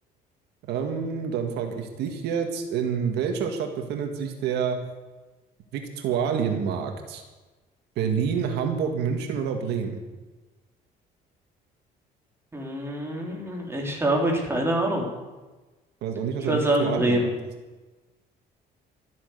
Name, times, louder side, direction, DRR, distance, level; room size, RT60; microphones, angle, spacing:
voice 1, 0.7-4.8 5.7-7.2 8.0-10.0 16.0-17.2, right 7 dB, 80° right, 5 dB, 1.8 m, -28 dB
voice 2, 12.5-15.1 16.5-17.3, right 1 dB, 15° right, 0 dB, 3.9 m, -25 dB
13.5 x 9.4 x 8.0 m, 1.2 s
cardioid pair, 110°, 17 cm